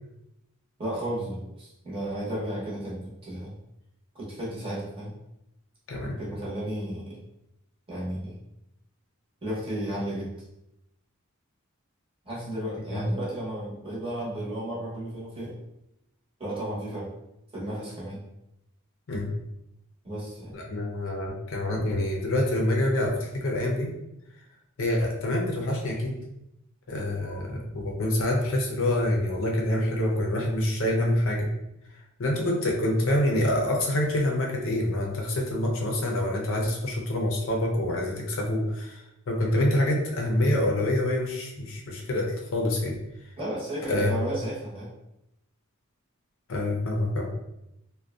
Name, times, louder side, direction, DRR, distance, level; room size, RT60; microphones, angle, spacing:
voice 1, 0.8-3.5 4.1-5.1 6.2-7.2 7.9-8.3 9.4-10.3 12.2-15.6 16.4-17.1 17.5-18.2 20.0-20.5 43.4-44.9, right 1 dB, 25° right, -7 dB, 0.8 m, -33 dB
voice 2, 20.5-23.9 24.8-26.2 26.9-31.5 32.2-39.0 39.3-43.0 43.9-44.1 46.5-47.3, left 1 dB, 65° left, -1 dB, 0.5 m, -26 dB
2.5 x 2.2 x 2.3 m, 0.85 s
head